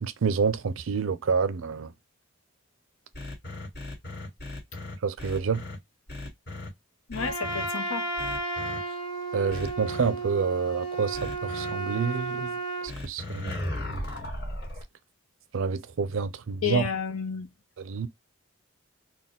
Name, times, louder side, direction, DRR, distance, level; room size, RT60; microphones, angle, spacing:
voice 1, 0.0-1.9 5.0-5.6 9.3-12.5 13.0-13.5 15.5-16.8 17.8-18.1, right 5 dB, 65° right, 0.4 m, -28 dB
sound 1, 3.1-5.8 6.1-6.7 7.1-7.7 8.2-8.8 9.5-10.1 11.1-11.7 12.9-14.8, left 1 dB, 50° left, 1.9 m, -36 dB
voice 2, 7.1-8.0 16.6-17.5, left 6 dB, 85° left, 0.8 m, -31 dB
Trumpet, 7.2-12.9, right 3 dB, 20° left, 1.2 m, -33 dB
4.1 x 2.2 x 3.5 m
head